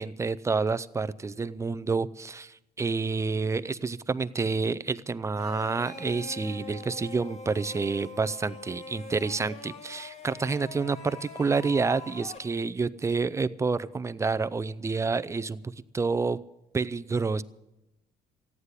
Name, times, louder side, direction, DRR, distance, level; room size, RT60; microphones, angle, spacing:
voice 1, 0.0-16.4 16.7-17.4, right 4 dB, 15° right, 14 dB, 0.5 m, -29 dB
sound 1, 5.4-12.4, left 3 dB, 40° left, 2.0 m, -43 dB
14.5 x 9.7 x 8.2 m, 0.98 s
cardioid pair, 110°, 17 cm